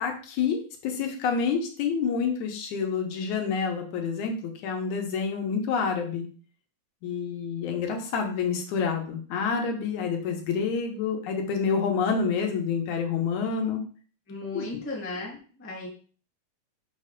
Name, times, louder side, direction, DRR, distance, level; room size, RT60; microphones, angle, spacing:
voice 1, 0.0-6.3 7.0-13.8 14.5-14.7, left 6 dB, 85° left, 3 dB, 2.5 m, -28 dB
voice 2, 14.3-15.9, left 2 dB, 10° left, -2 dB, 0.6 m, -36 dB
6.0 x 3.3 x 5.2 m, 0.41 s
omnidirectional pair, 3.3 m